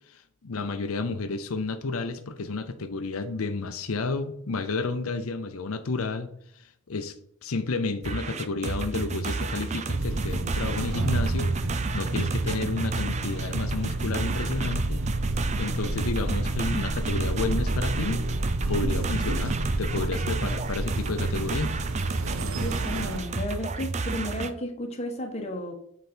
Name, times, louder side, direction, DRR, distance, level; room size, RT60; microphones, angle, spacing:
voice 1, 0.1-6.3 6.5-7.1 7.4-11.5 11.9-15.0 15.6-18.2 18.7-21.7, left 3 dB, 90° left, 8 dB, 0.7 m, -31 dB
sound 1, 8.0-24.5, right 3 dB, 30° right, 0.5 m, -31 dB
sound 2, 10.0-23.2, right 1 dB, 80° right, 0.9 m, -30 dB
voice 2, 22.6-25.7, left 1 dB, 30° left, 2 dB, 1.3 m, -33 dB
8.2 x 5.2 x 4.5 m, 0.69 s
head